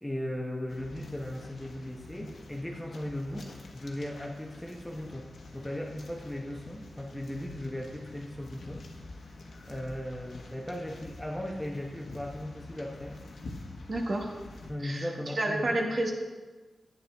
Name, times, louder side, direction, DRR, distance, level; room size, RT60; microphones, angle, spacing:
voice 1, 0.0-5.3 5.5-8.8 9.1-9.3 9.7-13.2 14.7-15.8, left 1 dB, 5° left, 0 dB, 0.9 m, -37 dB
sound 1, 0.7-14.7, left 2 dB, 70° left, 1.2 m, -47 dB
voice 2, 13.9-14.3 14.8-16.1, right 1 dB, 40° right, 2 dB, 1.2 m, -30 dB
10.5 x 9.4 x 3.5 m, 1.3 s
wide cardioid pair, 160°, 0 cm